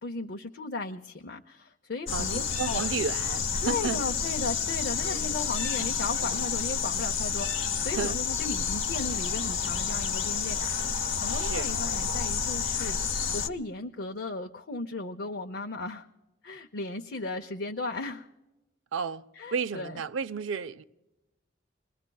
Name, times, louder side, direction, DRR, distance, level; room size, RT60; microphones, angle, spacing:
voice 1, 0.0-2.8 3.6-16.1 16.4-18.3 19.4-20.0, left 3 dB, 60° left, 0.6 m, -36 dB
sound 1, 2.1-13.5, left 6 dB, 80° left, 1.0 m, -30 dB
voice 2, 2.1-4.0 5.2-5.3 7.9-8.2 11.3-11.7 18.9-20.8, right 5 dB, 80° right, 0.5 m, -33 dB
26.5 x 20.5 x 2.3 m
head